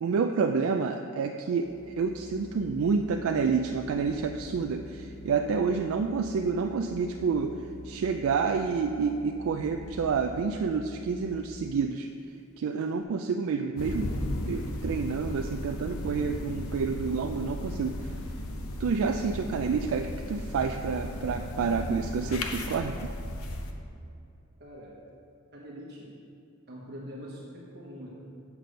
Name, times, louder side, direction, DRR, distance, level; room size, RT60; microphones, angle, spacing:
voice 1, 0.0-7.6 7.8-12.1 12.6-14.1 14.5-18.1 18.8-23.1, right 5 dB, 70° right, 5 dB, 0.3 m, -29 dB
Organ, 1.5-11.8, left 1 dB, 35° left, 0.6 m, -46 dB
sound 1, 13.8-23.7, left 1 dB, 80° left, 0.8 m, -35 dB
voice 2, 24.6-25.0 25.5-26.1 26.7-28.1, equal, 50° right, -5 dB, 1.1 m, -43 dB
8.2 x 6.0 x 5.2 m, 2.7 s
head